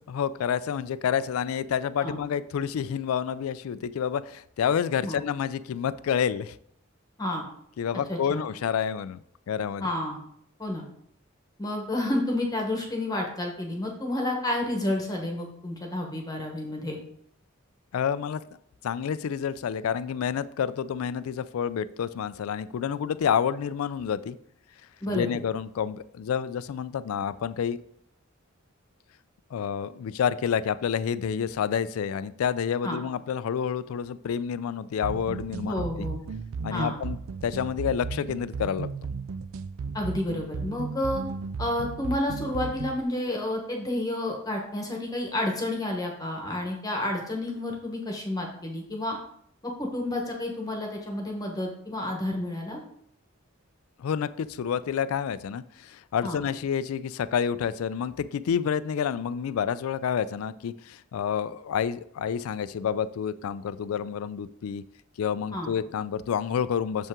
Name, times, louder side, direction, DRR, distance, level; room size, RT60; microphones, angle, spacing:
voice 1, 0.1-6.6 7.8-9.2 9.5-9.9 17.9-18.4 18.8-24.4 25.1-27.8 29.5-36.1 36.6-38.9 54.0-64.8 65.2-67.1, left 8 dB, 90° left, 15 dB, 0.3 m, -29 dB
voice 2, 8.1-8.5 9.8-10.2 10.6-10.8 11.6-17.0 25.0-25.3 32.8-33.0 35.6-36.2 36.7-36.9 39.9-41.2 41.6-49.2 49.6-52.8 56.2-56.4 65.5-65.7, left 1 dB, 20° left, 1 dB, 1.1 m, -30 dB
sound 1, 35.0-43.0, right 5 dB, 75° right, 0.4 m, -35 dB
7.1 x 5.4 x 3.6 m, 0.68 s
head